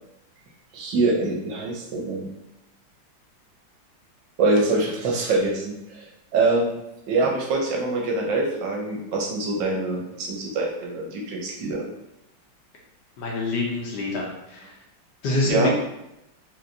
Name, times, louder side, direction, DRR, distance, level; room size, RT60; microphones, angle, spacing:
voice 1, 0.7-2.3 4.4-6.7 7.1-11.9 15.5-15.7, right 3 dB, 70° right, -1 dB, 1.3 m, -24 dB
voice 2, 13.2-14.7 15.2-15.7, left 2 dB, 65° left, -2 dB, 1.2 m, -26 dB
4.4 x 3.2 x 2.6 m, 0.87 s
omnidirectional pair, 2.2 m